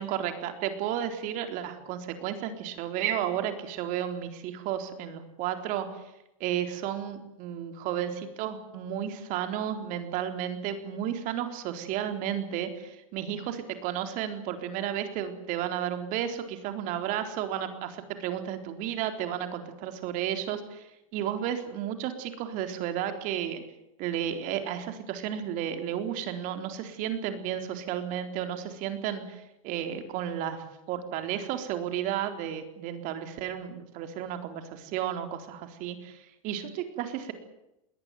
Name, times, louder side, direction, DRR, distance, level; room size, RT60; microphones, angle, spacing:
voice 1, 0.0-5.9 6.4-23.6 24.0-37.3, right 10 dB, 50° right, 7 dB, 4.0 m, -33 dB
21.0 x 18.0 x 9.5 m, 0.87 s
hypercardioid pair, 120°, 18 cm